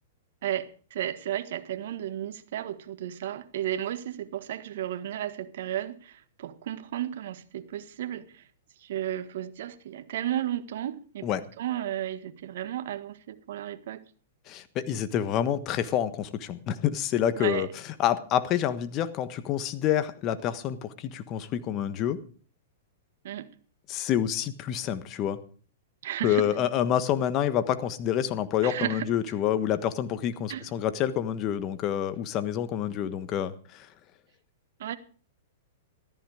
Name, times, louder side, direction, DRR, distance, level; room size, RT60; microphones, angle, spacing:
voice 1, 0.4-8.4 8.8-11.3 11.6-14.0 17.4-17.7 23.2-23.5 26.0-26.5 28.6-29.1 30.5-30.6 34.8-34.9, right 12 dB, 65° right, 1.6 m, -33 dB
voice 2, 14.5-22.2 23.9-25.4 26.2-33.9, left 10 dB, 35° left, 1.3 m, -28 dB
14.0 x 13.5 x 4.9 m
hypercardioid pair, 140°, 0 cm